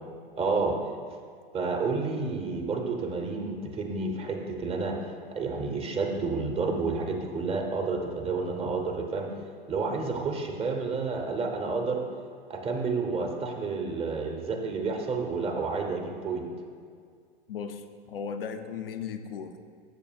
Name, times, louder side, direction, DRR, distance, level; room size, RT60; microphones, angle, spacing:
voice 1, 0.4-0.8 1.5-5.0 5.3-9.3 9.7-12.0 12.5-16.4, right 4 dB, 20° right, 3 dB, 0.8 m, -30 dB
voice 2, 17.5-19.6, left 6 dB, 70° left, 6 dB, 0.6 m, -36 dB
13.0 x 6.7 x 2.4 m, 2.1 s
figure-of-eight pair, 95°, 29 cm